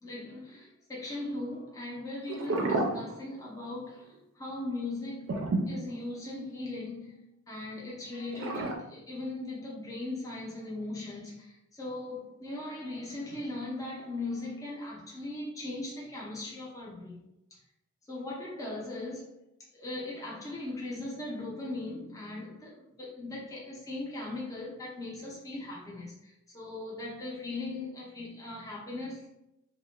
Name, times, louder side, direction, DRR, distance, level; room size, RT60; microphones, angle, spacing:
voice 1, 0.0-5.4 5.7-7.1 7.5-17.2 17.5-17.6 18.1-19.3 19.7-29.3, left 2 dB, 15° left, -5 dB, 0.5 m, -39 dB
sound 1, 2.3-3.7 4.0-4.2 5.3-6.6 8.3-8.8, right 2 dB, 65° right, 0.4 m, -31 dB
2.3 x 2.0 x 3.0 m, 0.85 s
head